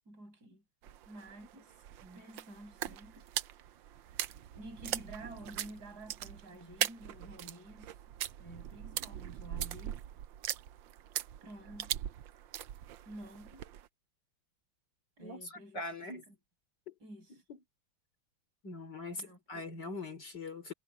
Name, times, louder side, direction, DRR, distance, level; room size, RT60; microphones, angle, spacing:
voice 1, 0.1-0.6 1.1-1.8 2.1-3.3 4.5-8.0 8.4-10.0 11.4-11.9 13.0-13.7 15.2-16.3 17.0-17.4 19.1-19.6, right 1 dB, 45° right, 6.9 m, -50 dB
sound 1, 0.8-13.9, right 12 dB, 70° right, 1.4 m, -41 dB
voice 2, 15.2-16.2 16.9-17.0 17.5-17.6 18.6-20.7, left 2 dB, 50° left, 4.2 m, -42 dB
omnidirectional pair, 2.4 m